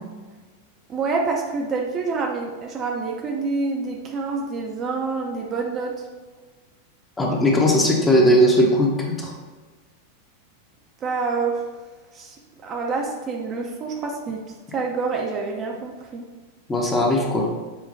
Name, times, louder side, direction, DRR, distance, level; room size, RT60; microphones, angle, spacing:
voice 1, 0.9-5.9 11.0-11.6 12.1-12.4 12.6-14.4 14.7-16.2, right 4 dB, 30° right, 0 dB, 0.4 m, -27 dB
voice 2, 7.2-9.3 16.7-17.5, equal, 15° left, -1 dB, 0.7 m, -18 dB
5.7 x 2.2 x 2.5 m, 1.3 s
figure-of-eight pair, 90°, 0 cm